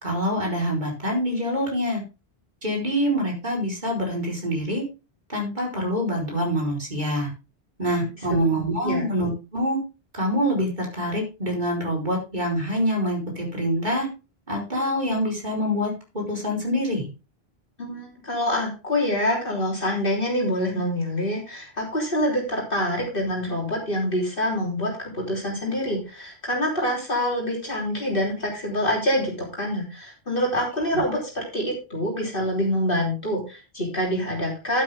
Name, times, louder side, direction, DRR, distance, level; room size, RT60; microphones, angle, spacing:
voice 1, 0.0-2.0 2.6-4.8 5.3-7.3 7.8-9.8 10.1-14.1 14.5-17.1 30.9-31.0, equal, 50° right, -1 dB, 4.7 m, -25 dB
voice 2, 8.5-9.0 17.8-34.8, equal, 60° left, -2 dB, 3.7 m, -26 dB
12.0 x 8.6 x 3.6 m, 0.30 s
omnidirectional pair, 1.0 m